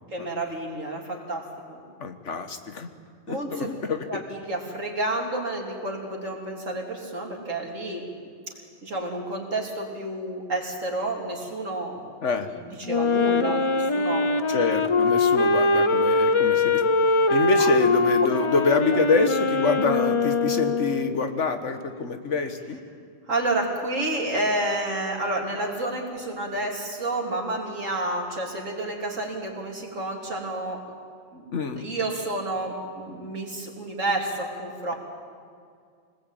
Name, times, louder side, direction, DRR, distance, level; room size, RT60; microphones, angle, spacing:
voice 1, 0.1-1.8 3.3-3.7 4.1-8.0 8.5-8.6 8.8-12.0 12.4-14.4 17.5-17.7 18.9-19.0 23.3-30.8 31.3-31.4 31.8-34.9, right 2 dB, 85° right, 0 dB, 4.0 m, -30 dB
voice 2, 2.0-2.9 3.3-4.2 12.2-12.5 14.5-16.8 17.3-22.8 31.5-31.9, left 4 dB, 70° left, 8 dB, 1.8 m, -26 dB
Wind instrument woodwind instrument, 12.8-21.3, left 3 dB, 30° left, 0.6 m, -22 dB
25.5 x 19.5 x 9.1 m, 2.2 s
omnidirectional pair, 1.3 m